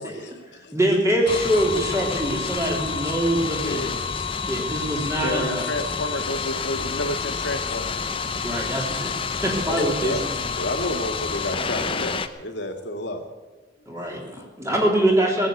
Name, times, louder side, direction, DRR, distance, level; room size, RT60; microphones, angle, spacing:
voice 1, 0.1-0.8 3.5-4.3 4.9-5.4 6.1-6.6 7.7-8.0 8.3-10.2 10.6-13.2, left 1 dB, 65° left, 4 dB, 2.2 m, -33 dB
voice 2, 0.7-4.0 4.4-5.7 8.0-8.1 8.3-9.1 9.4-10.4 13.9-15.5, right 1 dB, 15° right, -1 dB, 3.3 m, -24 dB
sound 1, 1.3-12.3, left 5 dB, 30° left, 0.7 m, -29 dB
voice 3, 5.2-8.0, left 1 dB, 85° left, 5 dB, 1.8 m, -30 dB
18.5 x 8.5 x 8.3 m, 1.3 s
head